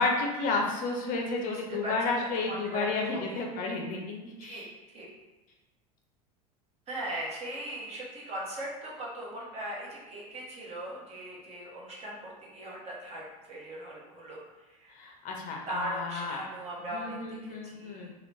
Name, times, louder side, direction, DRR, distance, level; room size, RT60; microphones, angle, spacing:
voice 1, 0.0-4.6 14.9-16.4 16.9-18.1, left 3 dB, 45° left, 1 dB, 0.5 m, -31 dB
voice 2, 1.4-1.9 2.4-2.9 3.1-3.4 4.4-5.1 6.9-14.9 15.7-18.1, right 1 dB, 35° right, -4 dB, 1.0 m, -39 dB
2.9 x 2.3 x 3.1 m, 1.1 s
hypercardioid pair, 95°, 20 cm